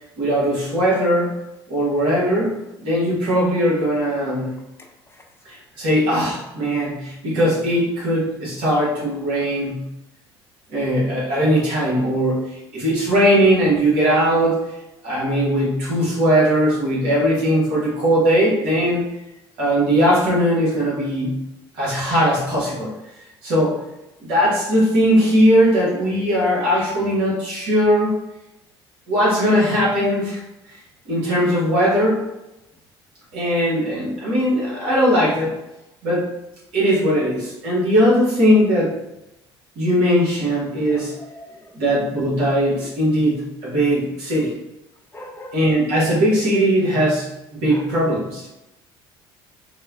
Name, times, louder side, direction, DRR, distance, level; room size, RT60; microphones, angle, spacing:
voice 1, 0.2-1.3 1.7-4.5 5.4-9.9 10.7-14.7 15.0-19.0 19.6-21.4 21.7-22.9 23.4-23.8 24.2-28.1 29.1-30.4 30.7-30.8 31.0-32.2 33.3-35.6 36.0-36.3 36.7-39.0 39.8-41.1 41.7-44.5 45.5-48.4, equal, 65° right, -7 dB, 1.2 m, -19 dB
voice 2, 4.8-5.2 40.9-41.7 45.1-45.6 47.7-47.9, equal, 20° left, 1 dB, 0.7 m, -41 dB
4.3 x 2.1 x 2.4 m, 0.93 s
figure-of-eight pair, 55°, 13 cm